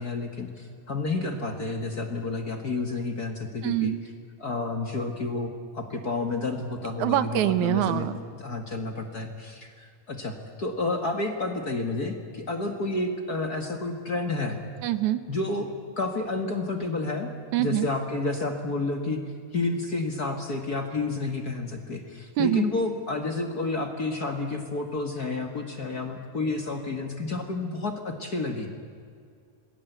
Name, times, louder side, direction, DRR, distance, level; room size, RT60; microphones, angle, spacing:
voice 1, 0.0-3.9 4.4-14.6 15.3-17.3 17.6-19.2 19.5-28.7, left 3 dB, 35° left, 4 dB, 1.8 m, -30 dB
voice 2, 3.6-4.0 7.0-8.1 14.8-15.2 17.5-17.9 22.4-22.6, right 13 dB, 75° right, 12 dB, 2.3 m, -24 dB
27.0 x 21.5 x 8.1 m, 2.3 s
omnidirectional pair, 3.5 m